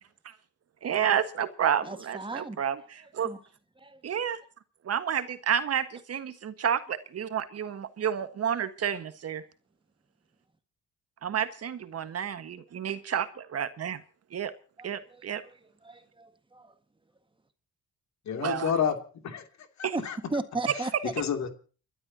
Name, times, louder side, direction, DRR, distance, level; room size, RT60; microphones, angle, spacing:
voice 1, 0.8-3.3 4.0-4.4 4.8-9.4 11.2-14.0 14.3-14.5 14.8-15.4 18.4-18.7 19.8-20.0, right 8 dB, 55° right, 10 dB, 1.5 m, -30 dB
voice 2, 1.8-2.6 3.0-3.4 3.8-4.0 14.8-16.7 19.9-20.0 20.3-21.1, right 2 dB, 15° right, 9 dB, 1.7 m, -36 dB
voice 3, 18.3-19.4 19.8-20.2 21.2-21.6, left 7 dB, 65° left, 5 dB, 2.8 m, -30 dB
30.0 x 12.0 x 2.9 m, 0.39 s
cardioid pair, 90°, 30 cm